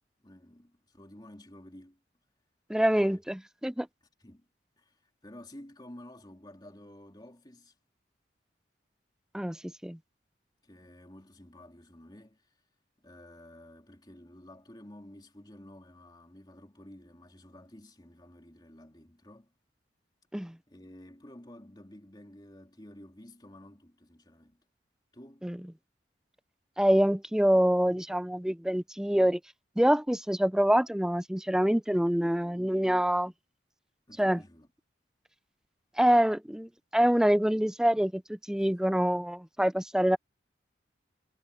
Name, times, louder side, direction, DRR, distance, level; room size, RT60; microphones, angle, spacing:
voice 1, 0.2-2.0 3.0-3.2 4.2-4.5 4.8-7.7 10.6-12.5 13.0-19.5 20.7-24.6 25.1-25.5 34.1-34.7, left 1 dB, 20° left, 3.1 m, -51 dB
voice 2, 2.7-3.9 9.3-9.6 9.8-10.0 20.3-20.5 25.4-25.6 26.8-29.4 29.8-33.3 34.2-34.4 36.0-38.2 38.5-40.2, equal, 5° right, 0.4 m, -25 dB
head